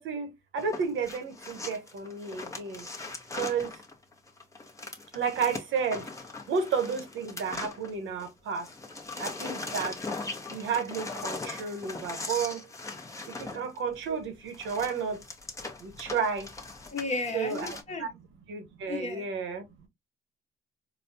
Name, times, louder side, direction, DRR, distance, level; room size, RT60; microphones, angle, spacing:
voice 1, 0.0-2.9 3.3-3.8 5.1-6.1 6.5-8.7 9.2-10.0 10.5-12.7 13.3-15.2 15.8-16.5 17.3-18.1 18.5-19.9, right 6 dB, 75° right, 1.0 m, -32 dB
sound 1, 0.6-8.3 8.5-17.8, left 3 dB, 15° left, 0.9 m, -40 dB
voice 2, 16.9-18.1 18.9-19.3, left 3 dB, 35° left, 1.2 m, -34 dB
4.0 x 2.2 x 2.6 m
cardioid pair, 90°, 20 cm